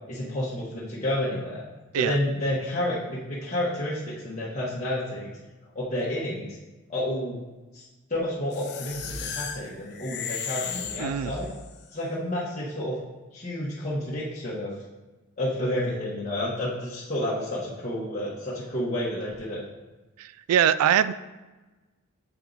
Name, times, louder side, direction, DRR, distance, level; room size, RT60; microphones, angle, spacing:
voice 1, 0.1-1.6 2.0-5.4 5.7-6.6 6.9-7.4 7.7-7.8 8.1-11.5 11.9-13.0 13.3-14.7 15.4-19.6, left 1 dB, 35° left, -9 dB, 1.1 m, -30 dB
sound 1, 8.5-11.8, left 6 dB, 50° left, 0.6 m, -35 dB
voice 2, 11.0-11.3 20.2-21.1, right 9 dB, 90° right, 16 dB, 0.3 m, -23 dB
7.0 x 4.6 x 3.9 m, 1.2 s
head